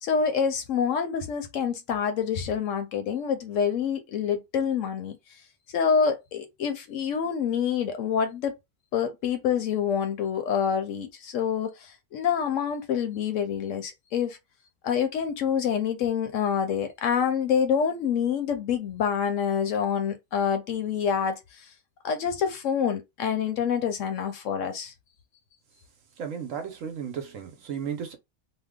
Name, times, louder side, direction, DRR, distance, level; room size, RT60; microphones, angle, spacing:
voice 1, 0.0-5.2 5.7-8.5 8.9-14.4 14.8-21.7 22.0-24.9, left 7 dB, 65° left, 0.9 m, -27 dB
voice 2, 26.2-28.1, right 7 dB, 70° right, 1.0 m, -34 dB
2.7 x 2.1 x 3.5 m
omnidirectional pair, 1.5 m